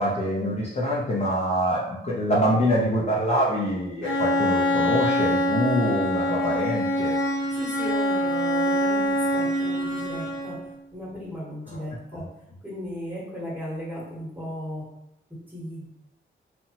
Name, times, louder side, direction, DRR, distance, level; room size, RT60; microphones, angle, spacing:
voice 1, 0.0-7.1 11.7-11.8 12.1-12.3, equal, 35° left, -5 dB, 0.5 m, -25 dB
Bowed string instrument, 4.0-10.7, equal, 75° left, 0.7 m, -25 dB
voice 2, 7.5-10.6 10.9-12.2 12.6-14.8 15.5-15.9, equal, 10° right, -6 dB, 1.0 m, -36 dB
2.8 x 2.1 x 2.7 m, 0.81 s
wide cardioid pair, 125°, 21 cm